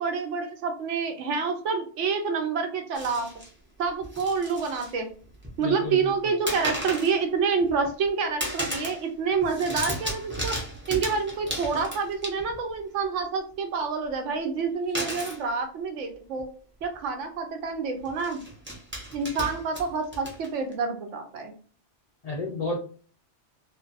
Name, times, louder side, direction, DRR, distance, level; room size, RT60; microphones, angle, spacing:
voice 1, 0.0-3.3 3.8-5.1 5.6-10.6 10.9-16.5 16.8-18.4 19.1-21.5, right 5 dB, 85° right, 6 dB, 1.0 m, -28 dB
sound 1, 2.9-3.5 4.0-4.9 5.2-5.8 6.5-7.2 7.6-8.1 8.4-9.0 9.3-12.7 14.9-15.4 16.4-16.5 16.8-17.0 18.0-20.7, equal, 15° right, 0.4 m, -35 dB
voice 2, 5.6-6.0 22.2-22.8, left 2 dB, 80° left, 0 dB, 0.3 m, -30 dB
2.5 x 2.2 x 2.5 m, 0.41 s
omnidirectional pair, 1.2 m